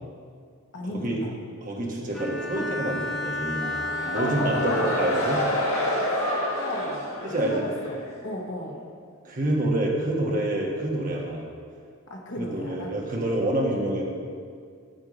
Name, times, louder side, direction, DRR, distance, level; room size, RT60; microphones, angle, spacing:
voice 1, 0.7-1.3 2.5-2.6 4.1-5.0 6.6-7.1 7.4-8.0 8.2-8.9 12.1-12.9, equal, 55° left, 0 dB, 1.1 m, -33 dB
voice 2, 1.6-3.7 4.0-5.4 7.2-7.6 9.2-11.4 12.4-14.0, right 1 dB, 40° right, -2 dB, 1.3 m, -27 dB
Bowed string instrument, 2.1-5.9, left 2 dB, ahead, 0.9 m, -33 dB
sound 1, 3.6-8.1, left 1 dB, 75° left, 1.9 m, -28 dB
8.3 x 8.1 x 4.0 m, 2.1 s
head